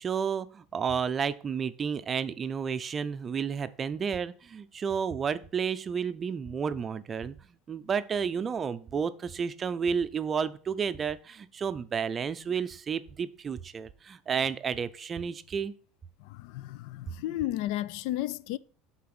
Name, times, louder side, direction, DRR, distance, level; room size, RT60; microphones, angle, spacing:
voice 1, 0.0-7.4 7.7-15.7, right 6 dB, 25° right, 0.5 m, -31 dB
voice 2, 16.2-18.6, left 14 dB, 65° left, 0.3 m, -33 dB
8.5 x 4.0 x 6.0 m
supercardioid pair, 140°, 0 cm